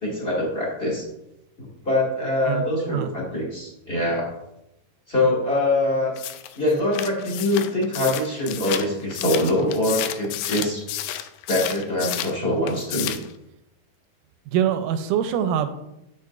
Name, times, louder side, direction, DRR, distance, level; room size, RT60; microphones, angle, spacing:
voice 1, 0.0-1.0 1.6-4.3 5.1-6.1 6.5-10.8 11.5-13.1, left 1 dB, 20° left, -4 dB, 1.7 m, -24 dB
voice 2, 2.5-3.1 14.5-15.7, right 9 dB, 80° right, 9 dB, 2.1 m, -24 dB
Flipping Pages, 6.2-12.4 12.7-13.3, left 12 dB, 80° left, 2.1 m, -31 dB
9.1 x 7.2 x 2.4 m, 0.85 s
omnidirectional pair, 3.9 m